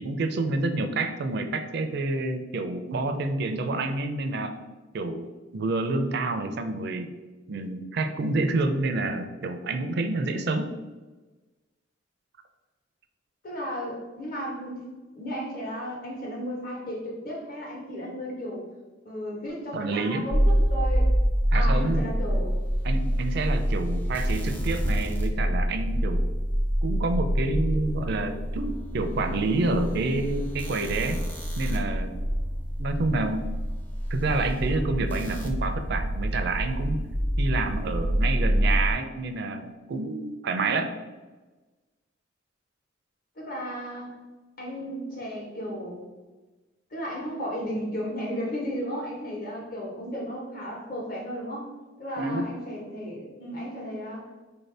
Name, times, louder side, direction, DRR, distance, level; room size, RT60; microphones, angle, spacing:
voice 1, 0.0-4.5 4.9-5.3 5.5-7.1 7.5-10.7 19.7-20.3 21.5-22.1 22.8-26.3 26.8-31.2 31.6-32.2 32.8-33.4 34.1-37.0 37.4-40.9 52.2-52.5, right 2 dB, 55° right, 8 dB, 0.4 m, -28 dB
voice 2, 13.4-18.6 19.0-21.1 21.5-22.5 43.4-44.1 44.6-46.0 46.9-51.6 52.0-54.2, equal, 50° left, -2 dB, 1.1 m, -34 dB
sound 1, 20.3-38.9, equal, 10° left, 0.5 m, -26 dB
4.3 x 2.7 x 3.3 m, 1.2 s
head